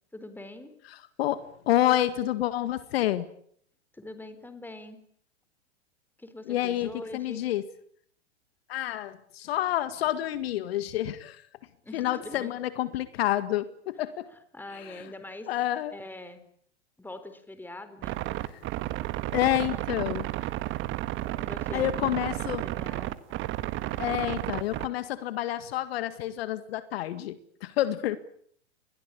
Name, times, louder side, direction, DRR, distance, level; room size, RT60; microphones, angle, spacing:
voice 1, 0.1-0.7 3.9-5.0 6.2-7.4 11.8-12.5 14.3-15.5 15.9-16.4 17.0-18.2 19.4-19.8 21.3-23.1, left 2 dB, 5° left, 10 dB, 4.2 m, -43 dB
voice 2, 1.2-3.3 6.5-7.6 8.7-11.4 11.9-14.3 14.7-15.0 15.5-15.9 18.4-18.6 19.3-20.2 21.7-22.6 24.0-27.4 27.6-28.2, left 13 dB, 60° left, 13 dB, 1.9 m, -28 dB
sound 1, 18.0-24.9, right 15 dB, 35° right, 1.8 m, -32 dB
29.0 x 22.0 x 8.6 m, 0.65 s
hypercardioid pair, 110°, 34 cm